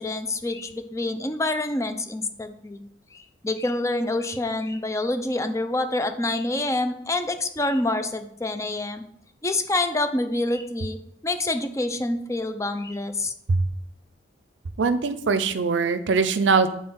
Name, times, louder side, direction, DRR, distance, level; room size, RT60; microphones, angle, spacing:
voice 1, 0.0-2.8 3.1-9.0 9.4-11.0 11.2-13.3, left 2 dB, 15° left, 8 dB, 0.5 m, -27 dB
voice 2, 14.8-16.7, right 4 dB, 75° right, 12 dB, 0.5 m, -22 dB
8.4 x 4.4 x 3.7 m, 0.73 s
head